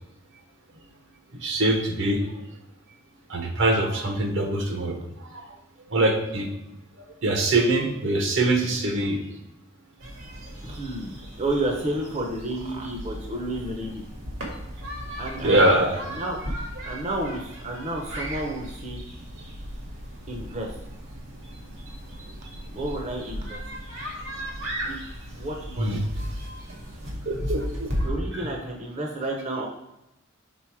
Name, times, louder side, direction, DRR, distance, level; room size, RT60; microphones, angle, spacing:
voice 1, 1.3-2.2 3.3-5.0 5.3-5.5 5.9-6.5 7.2-9.2 15.4-16.0 25.8-26.0 27.2-27.9 28.3-28.5, right 2 dB, 65° right, 4 dB, 1.0 m, -23 dB
sound 1, 10.0-28.1, equal, 85° right, 2.0 m, -36 dB
voice 2, 10.6-14.0 15.2-16.4 16.9-19.0 20.3-20.8 22.7-23.6 24.9-25.0 25.3-26.0 28.0-29.7, right 1 dB, 35° right, 1 dB, 0.7 m, -31 dB
6.0 x 3.9 x 4.8 m, 0.90 s
head